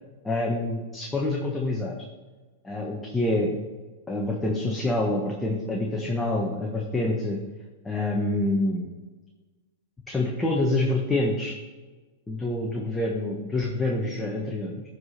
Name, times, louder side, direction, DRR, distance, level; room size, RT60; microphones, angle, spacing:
voice 1, 0.2-1.9 2.6-3.6 4.1-7.4 7.8-8.8 10.1-11.6 12.3-14.8, left 2 dB, 10° left, -1 dB, 1.4 m, -26 dB
12.0 x 5.1 x 4.3 m, 1.3 s
hypercardioid pair, 115°, 0 cm